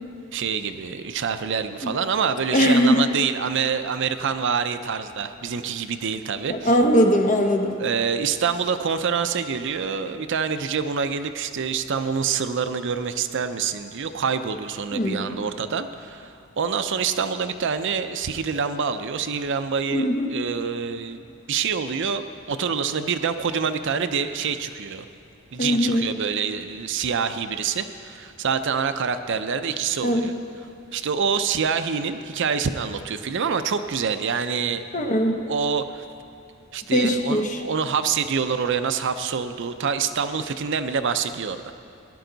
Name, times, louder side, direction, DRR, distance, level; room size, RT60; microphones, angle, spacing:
voice 1, 0.3-6.7 7.8-21.2 21.5-25.1 25.5-30.4 30.9-35.2 35.5-36.0 36.7-41.7, right 6 dB, 60° right, 10 dB, 0.5 m, -26 dB
voice 2, 2.5-3.0 6.5-7.7 14.9-15.5 19.9-20.3 25.6-26.1 30.0-30.3 34.9-35.3 36.9-37.6, equal, 40° left, 3 dB, 1.1 m, -20 dB
17.0 x 11.0 x 4.0 m, 2.6 s
head